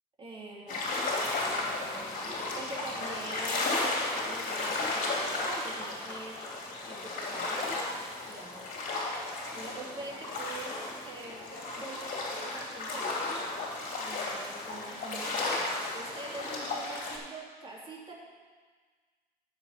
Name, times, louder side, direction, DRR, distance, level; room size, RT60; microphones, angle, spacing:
voice 1, 0.2-0.8 1.2-8.8 9.5-13.3 14.0-18.1, right 2 dB, 30° right, -4 dB, 2.8 m, -45 dB
sound 1, 0.7-17.2, left 2 dB, 50° left, 2.6 m, -34 dB
10.0 x 6.9 x 5.6 m, 1.5 s
cardioid pair, 110°, 17 cm